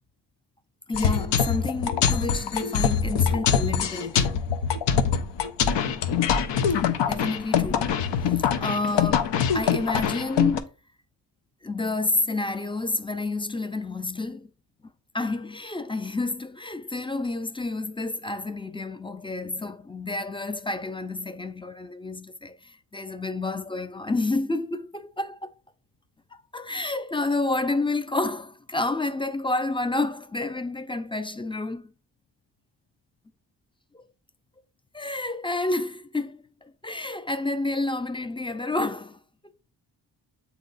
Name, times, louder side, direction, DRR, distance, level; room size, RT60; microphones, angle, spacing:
sound 1, 0.9-10.6, left 7 dB, 80° left, 0.8 m, -24 dB
voice 1, 0.9-4.4 6.9-8.0 8.3-10.7 11.6-14.5 15.1-25.5 26.5-31.9 33.9-34.0 34.9-39.2, left 2 dB, 15° left, 0.3 m, -29 dB
8.2 x 3.0 x 3.9 m
cardioid pair, 110°, 43 cm